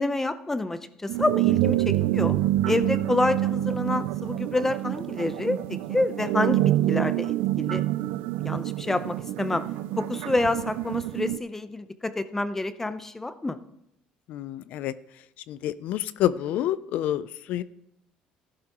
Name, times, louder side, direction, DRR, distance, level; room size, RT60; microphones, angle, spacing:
voice 1, 0.0-2.4 2.7-7.8 8.4-9.6 10.0-13.6, left 2 dB, 15° left, 12 dB, 0.7 m, -28 dB
sound 1, 1.1-11.4, right 15 dB, 85° right, 0.3 m, -26 dB
voice 2, 14.3-14.9 15.5-17.6, left 12 dB, 70° left, 16 dB, 0.4 m, -28 dB
13.5 x 11.5 x 3.0 m, 0.80 s
cardioid pair, 105°, 3 cm